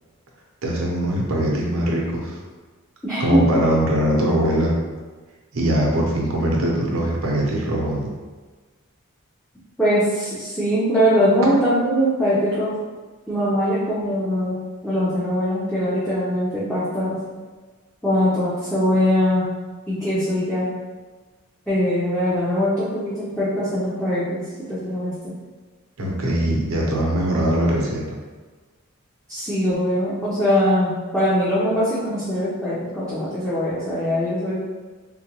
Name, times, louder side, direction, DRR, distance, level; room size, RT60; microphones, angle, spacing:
voice 1, 0.6-2.4 3.2-4.7 5.5-8.1 26.0-28.1, right 1 dB, 75° right, -2 dB, 0.7 m, -21 dB
voice 2, 3.0-3.4 9.8-12.7 13.3-17.1 18.0-19.5 19.9-20.7 21.7-25.3 29.3-34.6, equal, 5° left, -12 dB, 0.6 m, -22 dB
3.7 x 2.1 x 2.9 m, 1.4 s
head